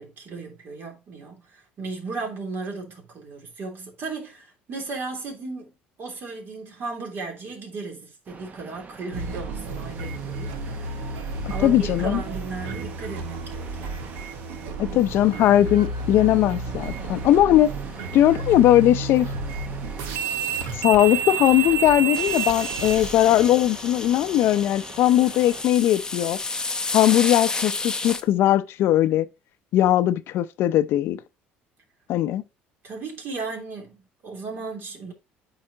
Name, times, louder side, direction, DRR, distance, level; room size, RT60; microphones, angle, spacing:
voice 1, 0.0-5.7 6.0-14.1 32.8-35.1, right 3 dB, 55° right, 3.2 m, -36 dB
sound 1, 8.3-25.6, right 4 dB, 35° right, 1.0 m, -43 dB
sound 2, 9.1-23.5, right 5 dB, 80° right, 1.2 m, -31 dB
voice 2, 11.6-12.2 14.8-17.7 18.1-19.3 20.8-26.4 26.9-29.2 29.7-31.2 32.1-32.4, left 13 dB, 65° left, 0.5 m, -19 dB
sound 3, 22.1-28.2, left 3 dB, 15° left, 0.7 m, -31 dB
8.7 x 4.8 x 2.9 m
supercardioid pair, 80°, 4 cm